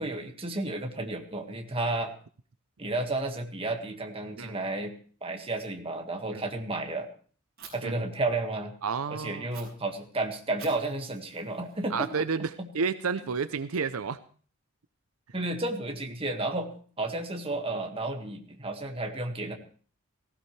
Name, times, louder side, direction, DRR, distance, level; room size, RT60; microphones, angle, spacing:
voice 1, 0.0-2.1 2.8-4.9 5.2-7.1 7.7-8.7 9.1-12.1 12.4-12.7 15.3-16.7 17.0-19.5, right 2 dB, 25° right, 4 dB, 1.8 m, -32 dB
Fire, 7.6-7.7 9.5-9.6 10.6-12.5, right 7 dB, 50° right, 5.8 m, -50 dB
voice 2, 8.8-9.5 11.9-14.2, right 5 dB, 80° right, 13 dB, 0.6 m, -31 dB
18.5 x 16.0 x 3.3 m, 0.43 s
head